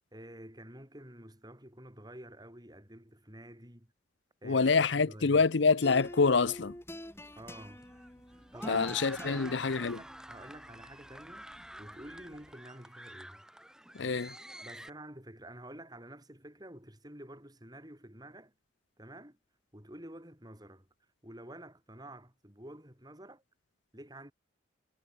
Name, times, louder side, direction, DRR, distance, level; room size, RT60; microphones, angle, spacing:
voice 1, 0.1-3.9 4.4-5.5 7.4-7.8 8.5-11.5 11.8-13.4 14.6-18.5 19.0-19.4 19.7-20.9 21.2-23.4 23.9-24.3, right 1 dB, 20° right, 7.7 m, -49 dB
voice 2, 4.4-6.7 8.7-10.0 14.0-14.3, left 4 dB, 70° left, 0.7 m, -26 dB
sound 1, 5.8-12.5, equal, 15° left, 4.4 m, -47 dB
sound 2, 6.9-14.9, right 1 dB, 5° right, 4.4 m, -48 dB
head